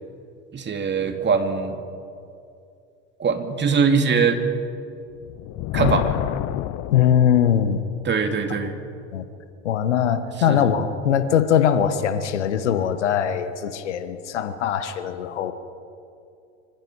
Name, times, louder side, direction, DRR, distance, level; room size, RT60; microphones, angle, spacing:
voice 1, 0.5-1.8 3.2-4.4 5.7-6.1 8.0-8.7 10.5-10.7, right 5 dB, 30° right, 5 dB, 2.7 m, -22 dB
Thunder, 5.1-7.8, left 15 dB, 55° left, 0.9 m, -27 dB
voice 2, 6.9-7.8 9.1-9.2 9.6-15.5, left 9 dB, 80° left, 10 dB, 1.5 m, -21 dB
25.5 x 25.5 x 5.0 m, 2.6 s
hypercardioid pair, 75°, 35 cm